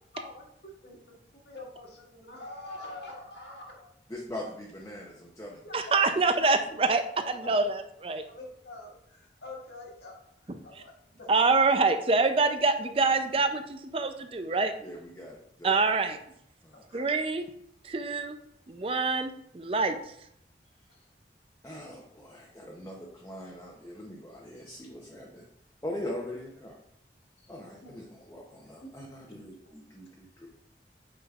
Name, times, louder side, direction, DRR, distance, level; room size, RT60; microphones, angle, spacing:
voice 1, 0.1-0.4 0.8-1.2 1.5-3.9 5.6-6.0 7.2-7.6 8.2-10.1 10.5-11.4 12.4-12.5 15.7-15.8 16.7-17.0 20.9-21.1 27.4-27.5 28.8-28.9, left 2 dB, 75° left, -2 dB, 1.7 m, -45 dB
voice 2, 4.1-5.7 7.5-7.6 14.8-15.7 16.6-16.8 21.6-25.4 25.8-26.8 27.5-30.5, left 1 dB, 15° left, -2 dB, 0.7 m, -41 dB
voice 3, 5.7-8.2 10.5-10.6 11.3-14.7 15.6-16.2 16.9-17.5 17.8-18.4 18.7-20.0, right 3 dB, 30° right, 8 dB, 0.4 m, -26 dB
8.4 x 5.1 x 2.4 m, 0.74 s
head